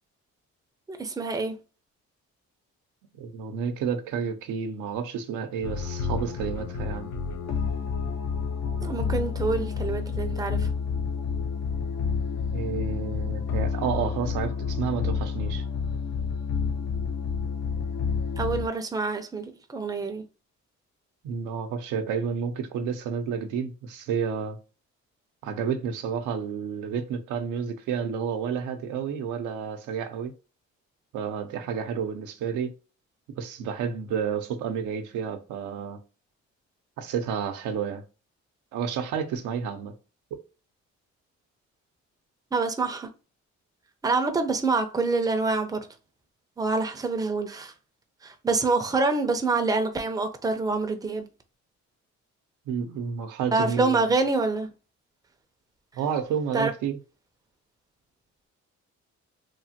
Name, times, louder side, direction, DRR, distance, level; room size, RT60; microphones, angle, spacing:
voice 1, 0.9-1.6 8.8-10.7 18.4-20.2 42.5-43.1 44.0-45.9 46.6-47.7 48.2-51.3 53.5-54.7 56.5-56.7, right 3 dB, 10° right, 0.5 m, -26 dB
voice 2, 3.2-7.1 12.5-15.6 21.2-24.6 25.4-30.3 31.1-32.7 33.3-36.0 37.0-38.0 38.7-39.9 52.7-54.0 56.0-57.0, right 6 dB, 90° right, 0.6 m, -30 dB
sound 1, 5.6-18.7, left 5 dB, 65° left, 0.6 m, -29 dB
3.1 x 2.1 x 2.7 m
cardioid pair, 90°, 30 cm